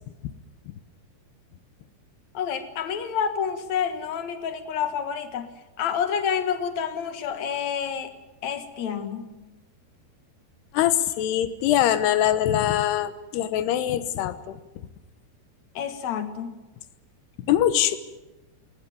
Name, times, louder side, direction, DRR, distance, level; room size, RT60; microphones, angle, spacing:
voice 1, 2.3-5.5 5.8-8.1 8.4-9.3 15.7-16.5, left 7 dB, 55° left, 9 dB, 2.4 m, -28 dB
voice 2, 10.7-14.6 17.5-18.0, left 11 dB, 75° left, 12 dB, 3.2 m, -23 dB
20.0 x 19.5 x 9.4 m, 1.0 s
omnidirectional pair, 4.8 m